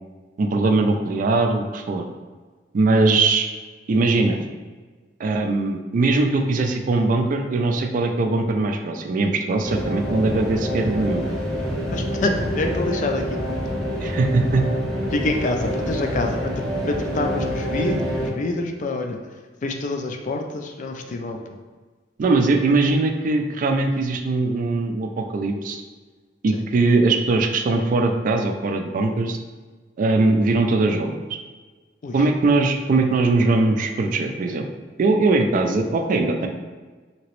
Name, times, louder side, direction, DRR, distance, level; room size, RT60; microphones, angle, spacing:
voice 1, 0.4-2.0 2.7-3.5 3.9-4.4 5.2-11.3 14.0-14.6 22.2-25.8 26.4-29.4 30.0-31.1 32.1-34.7 35.0-36.5, right 3 dB, 45° right, 5 dB, 0.3 m, -20 dB
sound 1, 9.6-18.3, equal, ahead, 0.7 m, -27 dB
voice 2, 11.9-13.6 15.1-19.4 19.6-21.6 26.5-26.6 32.0-32.3, left 2 dB, 45° left, 4 dB, 0.3 m, -27 dB
2.9 x 2.9 x 3.0 m, 1.4 s
head